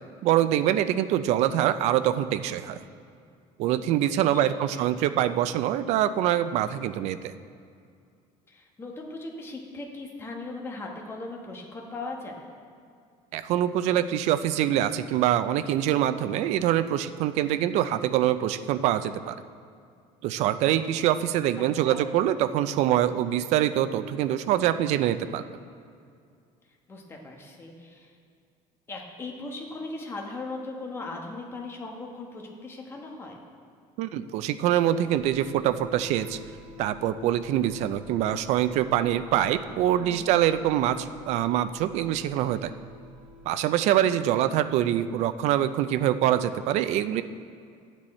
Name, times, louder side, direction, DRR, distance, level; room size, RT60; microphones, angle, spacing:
voice 1, 0.2-2.8 3.6-7.3 13.3-19.4 20.2-25.5 34.0-36.4 36.8-42.7 43.5-47.2, right 11 dB, 60° right, 12 dB, 0.4 m, -24 dB
voice 2, 4.7-5.2 8.5-12.4 21.6-22.0 26.9-28.1 28.9-33.4 40.0-40.4, left 2 dB, 20° left, 1 dB, 1.2 m, -39 dB
sound 1, 35.1-43.5, left 1 dB, 85° right, 1.3 m, -49 dB
12.0 x 9.0 x 4.3 m, 2.3 s
cardioid pair, 165°, 13 cm